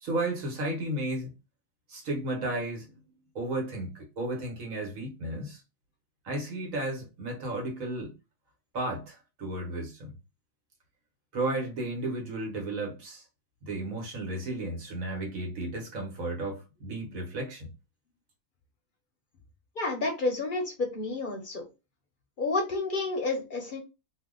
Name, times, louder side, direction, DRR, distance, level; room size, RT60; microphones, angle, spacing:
voice 1, 0.0-1.3 1.9-2.9 3.3-5.6 6.2-8.1 8.7-10.1 11.3-13.2 13.6-17.7, right 2 dB, 85° right, 1.4 m, -33 dB
voice 2, 19.8-21.6 22.4-23.8, left 3 dB, 50° left, 0.6 m, -30 dB
2.7 x 2.2 x 3.6 m
omnidirectional pair, 1.4 m